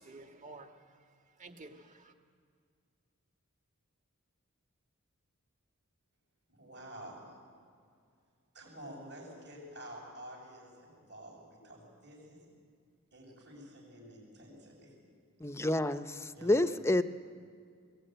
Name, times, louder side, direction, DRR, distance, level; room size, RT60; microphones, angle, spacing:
voice 1, 0.0-2.1, right 2 dB, 35° right, 5 dB, 1.7 m, -52 dB
voice 2, 6.5-7.3 8.5-12.4 13.1-14.9 16.4-16.7, right 1 dB, 55° right, -7 dB, 6.7 m, -49 dB
voice 3, 15.4-17.0, left 1 dB, 10° left, 11 dB, 0.7 m, -29 dB
22.5 x 17.0 x 9.1 m, 2.2 s
head